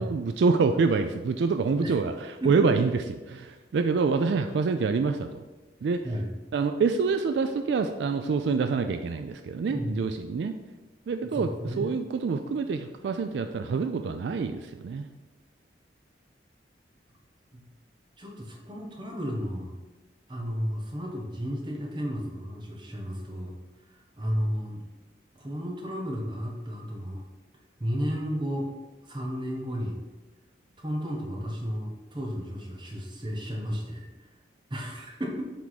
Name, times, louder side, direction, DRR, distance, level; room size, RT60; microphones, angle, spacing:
voice 1, 0.0-3.0 3.3-5.4 5.8-6.1 6.5-10.5 11.1-15.1, right 4 dB, 70° right, 8 dB, 0.3 m, -26 dB
voice 2, 11.3-11.9 17.5-17.6 18.2-19.7 20.3-23.6 24.2-24.8 25.4-27.3 27.8-28.7 29.0-30.0 30.8-34.1 34.7-35.4, equal, 25° right, 0 dB, 1.0 m, -33 dB
7.3 x 3.6 x 4.0 m, 1.2 s
head